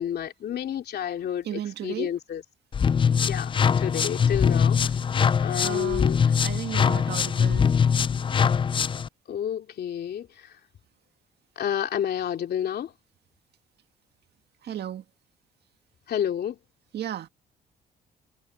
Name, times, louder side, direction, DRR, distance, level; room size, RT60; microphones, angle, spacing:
voice 1, 0.0-2.4 3.1-5.0 5.4-6.2 9.3-10.6 11.6-12.9 16.1-16.6, left 9 dB, 65° left, 3.0 m, -30 dB
voice 2, 1.5-2.1 5.6-6.1 6.4-7.7 14.6-15.0 16.9-17.3, right 10 dB, 65° right, 2.0 m, -34 dB
sound 1, 2.7-9.1, left 6 dB, 30° left, 0.4 m, -22 dB
cardioid pair, 75°, 18 cm